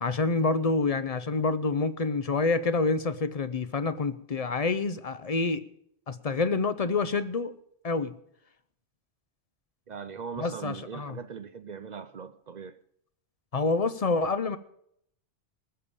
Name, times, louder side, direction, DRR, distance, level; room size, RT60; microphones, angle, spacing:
voice 1, 0.0-5.6 6.1-7.5 7.8-8.1 10.4-11.2 13.5-14.6, left 3 dB, 40° left, 0.6 m, -27 dB
voice 2, 9.9-12.8, right 6 dB, 50° right, 0.6 m, -40 dB
19.5 x 6.9 x 7.0 m
omnidirectional pair, 1.2 m